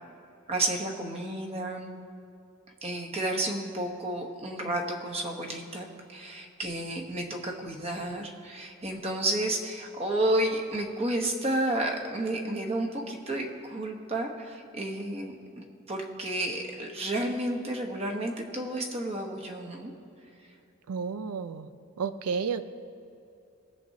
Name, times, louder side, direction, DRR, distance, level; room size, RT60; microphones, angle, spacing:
voice 1, 0.5-1.9 2.8-19.9, right 1 dB, 25° right, 1 dB, 1.0 m, -31 dB
voice 2, 20.9-21.7 22.0-22.6, right 6 dB, 90° right, 12 dB, 0.4 m, -31 dB
20.5 x 7.5 x 2.8 m, 2.7 s
head